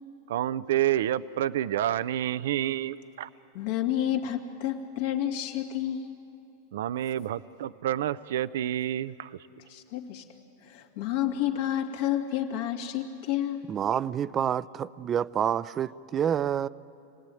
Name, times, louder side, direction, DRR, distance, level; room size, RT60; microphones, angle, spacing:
voice 1, 0.3-3.3 6.7-9.4, right 12 dB, 75° right, 0.6 m, -29 dB
voice 2, 3.5-6.1 9.7-10.2 10.6-13.6, left 11 dB, 65° left, 2.4 m, -30 dB
voice 3, 13.7-16.7, right 9 dB, 30° right, 0.5 m, -28 dB
27.5 x 18.5 x 9.1 m
hypercardioid pair, 120°, 0 cm